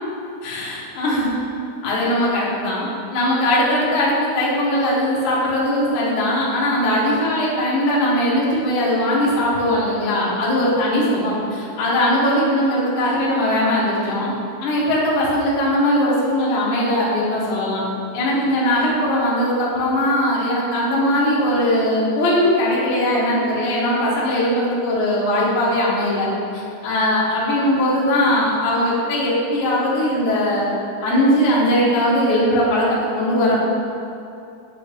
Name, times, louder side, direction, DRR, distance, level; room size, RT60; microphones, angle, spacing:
voice 1, 0.4-1.3 1.8-14.3 14.6-17.8 18.1-26.3 26.5-30.7 31.0-32.9 33.2-33.6, left 1 dB, 65° left, -6 dB, 1.9 m, -20 dB
10.0 x 3.5 x 3.4 m, 2.6 s
omnidirectional pair, 5.1 m